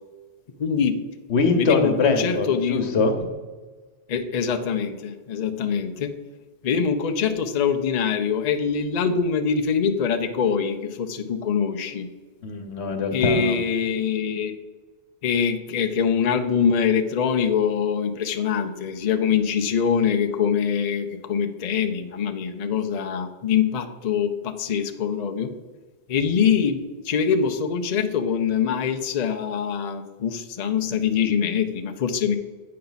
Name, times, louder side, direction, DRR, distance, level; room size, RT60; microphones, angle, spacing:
voice 1, 0.6-1.0 1.6-3.0 4.1-6.1 6.6-12.1 13.1-14.5 15.2-25.5 26.1-32.4, left 7 dB, 50° left, 5 dB, 0.6 m, -24 dB
voice 2, 1.3-3.3 12.4-13.6, left 4 dB, 80° left, 5 dB, 1.2 m, -23 dB
8.5 x 5.6 x 3.9 m, 1.3 s
omnidirectional pair, 1.1 m